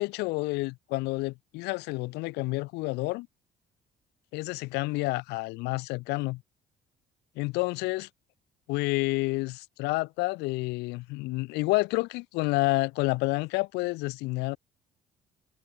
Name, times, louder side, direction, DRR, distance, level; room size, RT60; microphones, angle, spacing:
voice 1, 0.0-3.3 4.3-6.4 7.4-8.1 8.7-14.6, left 23 dB, 90° left, 0.4 m, -29 dB
cardioid pair, 110°, 17 cm